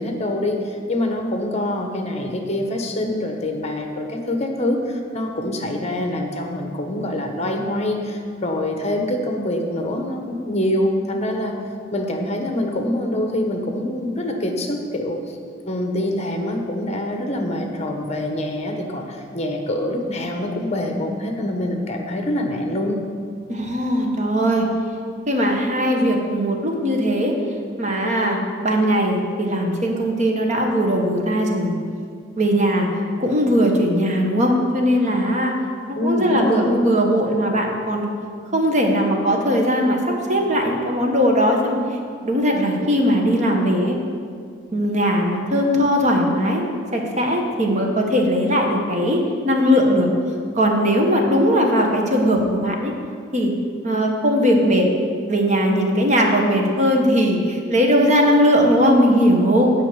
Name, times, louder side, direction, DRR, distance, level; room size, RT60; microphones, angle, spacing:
voice 1, 0.0-11.6 11.9-15.4 15.7-23.0 35.9-36.8, left 1 dB, 35° left, 3 dB, 1.1 m, -25 dB
voice 2, 23.5-24.7 25.3-27.3 27.8-31.7 32.4-32.9 33.2-35.5 35.9-38.1 38.5-41.8 42.2-43.9 44.7-46.6 46.9-50.1 50.5-52.9 53.3-53.5 53.8-54.9 55.3-59.7, equal, 40° right, 1 dB, 1.3 m, -19 dB
8.3 x 5.6 x 7.9 m, 2.1 s
head